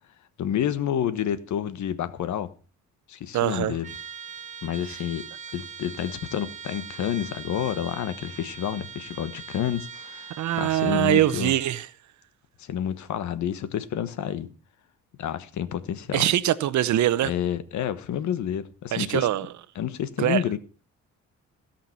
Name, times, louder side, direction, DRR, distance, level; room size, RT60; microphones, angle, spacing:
voice 1, 0.4-2.5 3.1-3.9 4.6-5.3 5.5-11.5 12.6-14.5 15.2-16.2 17.2-19.3 19.7-20.6, left 10 dB, 70° left, 1.2 m, -29 dB
voice 2, 3.3-3.7 10.4-11.9 16.1-17.3 18.9-19.5 20.2-20.4, right 13 dB, 70° right, 0.9 m, -23 dB
Trumpet, 3.8-11.9, right 6 dB, 25° right, 1.5 m, -41 dB
16.5 x 5.9 x 5.8 m
cardioid pair, 90°, 30 cm